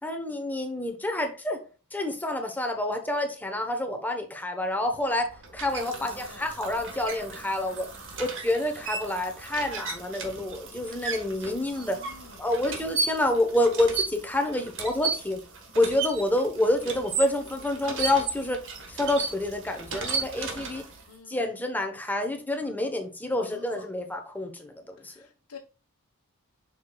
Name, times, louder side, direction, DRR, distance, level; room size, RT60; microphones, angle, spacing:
voice 1, 0.0-1.6 1.9-7.9 8.2-12.0 12.4-15.4 15.8-18.6 18.9-20.8 21.3-25.1, left 1 dB, 10° left, 1.0 m, -28 dB
sound 1, 4.9-21.1, right 4 dB, 60° right, 1.5 m, -35 dB
voice 2, 6.0-6.5 11.8-12.5 16.6-16.8 21.1-21.5 23.4-23.9 25.0-25.6, left 4 dB, 90° left, 1.2 m, -48 dB
7.3 x 6.0 x 2.3 m
head